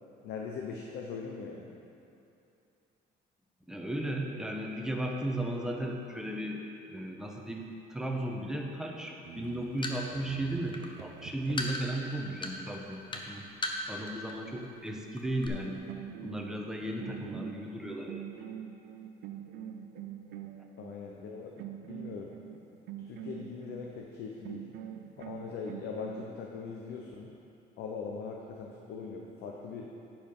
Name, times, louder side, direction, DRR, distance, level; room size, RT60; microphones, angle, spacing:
voice 1, 0.2-1.7 20.8-22.3 23.1-24.7 25.2-27.3 27.8-29.9, left 5 dB, 80° left, 0 dB, 0.8 m, -41 dB
voice 2, 3.7-6.6 6.9-13.5 13.9-15.8 16.2-18.2, right 1 dB, 5° right, 0 dB, 0.9 m, -35 dB
sound 1, 9.2-11.9 15.5-15.6 15.9-21.0 21.6-23.9 24.4-26.2, right 9 dB, 75° right, 0.6 m, -44 dB
sound 2, 9.4-14.3 14.6-14.9 15.2-15.5, left 2 dB, 30° left, 0.9 m, -37 dB
9.6 x 4.8 x 5.4 m, 2.7 s
cardioid pair, 110°, 17 cm